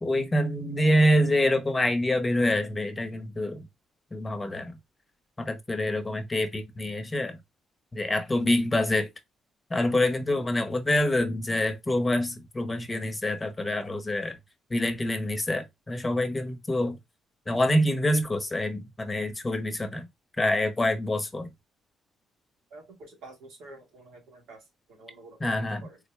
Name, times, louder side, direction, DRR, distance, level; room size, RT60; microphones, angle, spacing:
voice 1, 0.0-3.6 4.1-4.7 5.4-7.4 7.9-9.1 9.7-14.4 14.7-17.0 17.5-20.1 20.4-21.5 25.4-25.8, left 1 dB, 20° left, 0.8 m, -26 dB
voice 2, 22.7-24.6 24.9-26.0, right 2 dB, 90° right, 1.3 m, -48 dB
3.6 x 2.2 x 3.2 m
cardioid pair, 90°, 0 cm